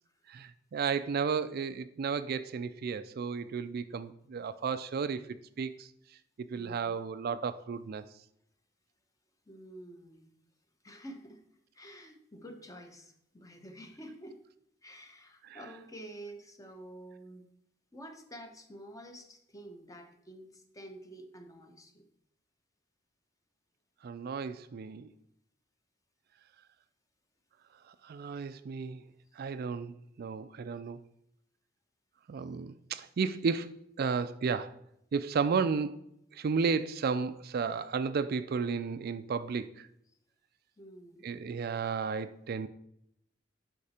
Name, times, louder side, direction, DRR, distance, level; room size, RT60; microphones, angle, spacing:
voice 1, 0.3-5.9 6.4-8.1 15.4-15.6 24.0-25.1 27.9-29.0 29.4-31.0 32.3-34.8 35.1-39.9 41.2-42.7, right 5 dB, 55° right, 0.4 m, -33 dB
voice 2, 6.6-7.0 9.5-10.3 10.8-11.4 11.7-14.4 14.8-17.5 17.9-22.1 40.8-41.3, right 1 dB, 20° left, 0.9 m, -49 dB
8.4 x 5.8 x 4.2 m
head